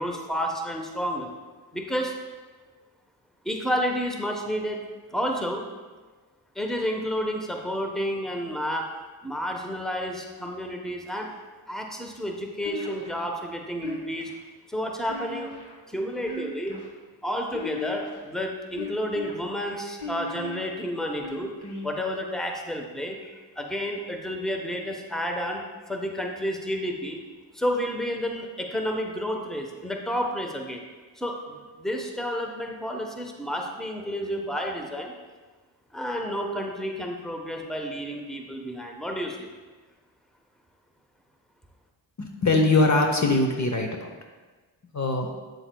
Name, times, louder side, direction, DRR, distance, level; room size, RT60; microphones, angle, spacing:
voice 1, 0.0-1.3 1.7-2.2 3.4-4.8 5.1-5.6 6.5-8.9 9.2-11.3 11.7-14.3 14.7-15.5 15.9-16.8 17.2-21.5 21.8-27.2 27.5-30.8 31.2-31.4 31.8-35.1 35.9-39.5, equal, ahead, 2 dB, 1.0 m, -30 dB
sound 1, 12.6-13.2 13.8-14.4 15.1-15.8 16.2-16.9 17.5-18.2 18.8-19.3 20.0-20.6 21.2-21.9, left 3 dB, 55° left, 1.6 m, -37 dB
voice 2, 42.2-44.1 44.9-45.3, left 2 dB, 35° left, 3 dB, 0.9 m, -22 dB
8.0 x 7.0 x 2.3 m, 1.3 s
cardioid pair, 50°, 46 cm